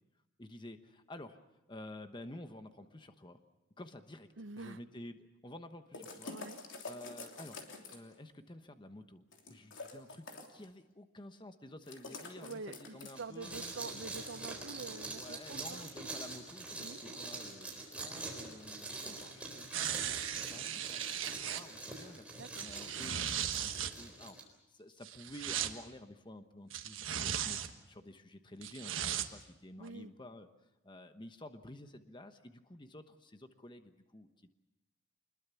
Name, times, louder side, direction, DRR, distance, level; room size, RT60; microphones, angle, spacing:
voice 1, 0.4-1.4 1.7-3.4 3.8-4.3 4.6-6.4 6.8-7.7 7.9-13.7 15.2-24.4 24.7-27.6 27.9-30.5 30.8-34.5, left 1 dB, 25° left, 8 dB, 1.1 m, -51 dB
voice 2, 4.4-4.8 6.3-6.6 12.4-15.9 16.8-17.0 22.3-22.7 29.8-30.1, right 4 dB, 70° right, 13 dB, 0.8 m, -46 dB
sound 1, 5.9-8.1 9.3-10.7 11.9-13.3, left 3 dB, 70° left, 3.1 m, -47 dB
sound 2, 13.1-24.4, right 2 dB, 5° right, 4.0 m, -45 dB
sound 3, 19.7-21.6 22.4-23.9 25.0-25.7 26.7-27.7 28.6-29.3 29.9-30.0, right 9 dB, 85° right, 1.4 m, -37 dB
25.5 x 21.0 x 7.0 m, 0.98 s
head